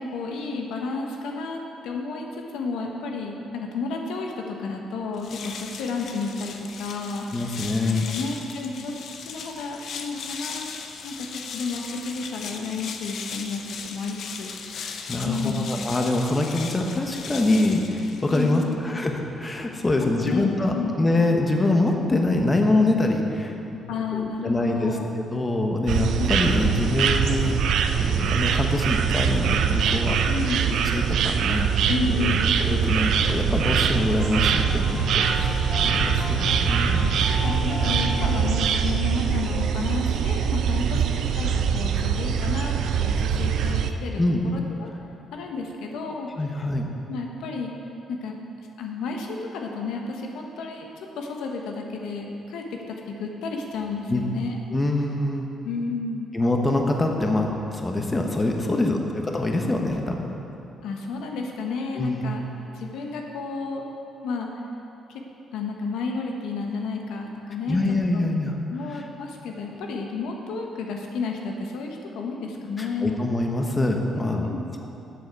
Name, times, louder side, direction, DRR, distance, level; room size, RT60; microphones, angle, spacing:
voice 1, 0.0-7.3 8.0-8.9 9.2-10.7 11.0-11.3 11.5-14.5 15.2-15.7 18.3-18.8 20.0-20.4 20.7-20.9 23.9-25.1 30.2-30.7 31.9-32.5 36.9-44.9 45.3-46.5 47.1-47.7 48.1-48.3 48.8-54.6 55.6-56.3 58.7-58.9 60.8-62.4 62.7-63.8 64.2-64.5 65.1-65.2 65.5-67.8 68.1-68.2 68.7-73.2 74.2-74.6, left 4 dB, 85° left, 1 dB, 1.1 m, -31 dB
sound 1, 5.1-18.8, left 5 dB, 65° left, 0.7 m, -38 dB
voice 2, 7.3-8.0 14.7-23.8 24.1-25.0 25.3-27.6 28.0-30.3 30.6-31.7 32.0-37.1 41.1-41.2 44.2-44.4 46.4-46.9 54.1-54.2 54.7-55.5 56.3-59.0 59.2-60.3 61.9-62.2 67.7-68.6 68.9-69.0 72.8-74.5 74.8-74.9, left 2 dB, 25° left, 2 dB, 1.1 m, -25 dB
sound 2, 25.9-43.9, right 7 dB, 75° right, 0.5 m, -23 dB
sound 3, 33.9-39.1, left 4 dB, 40° left, 2.2 m, -34 dB
12.0 x 7.6 x 4.7 m, 3.0 s
cardioid pair, 90°, 0 cm